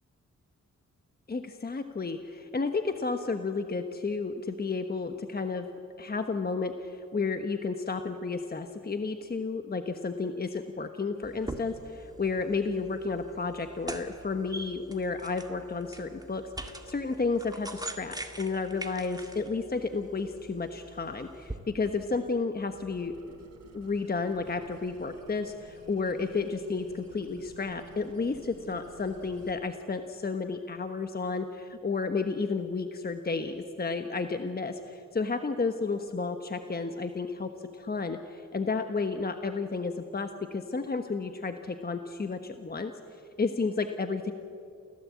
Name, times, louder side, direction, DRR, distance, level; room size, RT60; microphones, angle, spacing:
voice 1, 1.3-5.7 6.0-23.1 23.7-42.9 43.4-44.3, left 4 dB, 30° left, 7 dB, 1.2 m, -32 dB
sound 1, 11.2-21.6, right 2 dB, 15° right, 2.0 m, -43 dB
sound 2, 22.7-29.5, right 3 dB, 60° right, 4.2 m, -54 dB
28.5 x 17.0 x 8.5 m, 2.5 s
cardioid pair, 90°, 30 cm